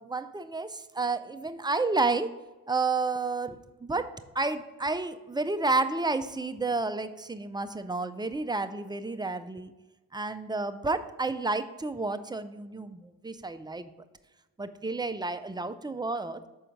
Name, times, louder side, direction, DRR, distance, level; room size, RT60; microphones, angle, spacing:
voice 1, 0.0-2.3 2.7-9.7 10.1-13.9 14.6-16.5, right 3 dB, 10° right, 9 dB, 0.4 m, -31 dB
6.3 x 4.4 x 5.2 m, 1.1 s
supercardioid pair, 65°, 40 cm